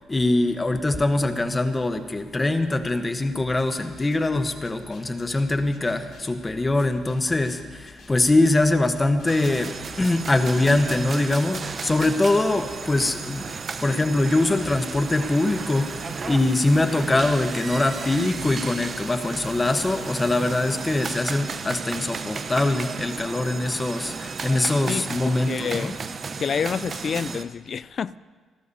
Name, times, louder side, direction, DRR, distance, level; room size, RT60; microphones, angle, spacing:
voice 1, 0.1-9.7 10.0-13.5 13.8-25.9, left 2 dB, 20° left, 1.0 m, -23 dB
sound 1, 3.3-20.5, left 5 dB, 65° left, 3.1 m, -49 dB
sound 2, 9.3-27.4, right 5 dB, 45° right, 0.8 m, -34 dB
voice 2, 24.9-26.0 26.4-28.2, left 6 dB, 50° left, 0.3 m, -28 dB
30.0 x 12.0 x 2.8 m
cardioid pair, 90°, 0 cm